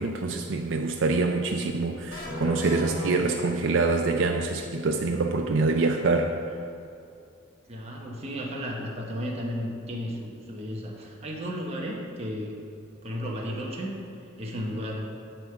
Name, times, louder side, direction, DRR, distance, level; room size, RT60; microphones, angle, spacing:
voice 1, 0.0-6.4, right 3 dB, 60° right, 3 dB, 0.4 m, -25 dB
sound 1, 2.1-4.1, left 1 dB, 65° left, 1.8 m, -35 dB
voice 2, 7.7-12.5 13.0-14.0 14.4-15.1, equal, 30° right, -2 dB, 1.0 m, -33 dB
9.8 x 3.7 x 6.9 m, 2.5 s
head